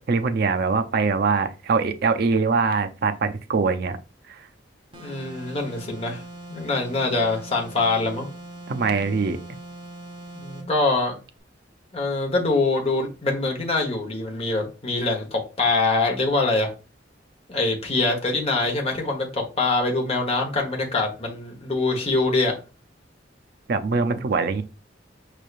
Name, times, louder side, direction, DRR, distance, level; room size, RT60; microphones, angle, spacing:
voice 1, 0.1-4.0 4.3-4.5 8.7-9.4 23.7-24.6, right 4 dB, 55° right, 0.5 m, -23 dB
voice 2, 4.9-6.2 6.5-8.3 10.3-11.2 11.9-16.7 17.5-22.6, left 3 dB, 35° left, 1.1 m, -24 dB
sound 1, 4.9-10.7, right 2 dB, 25° right, 1.0 m, -41 dB
5.3 x 3.3 x 2.4 m
head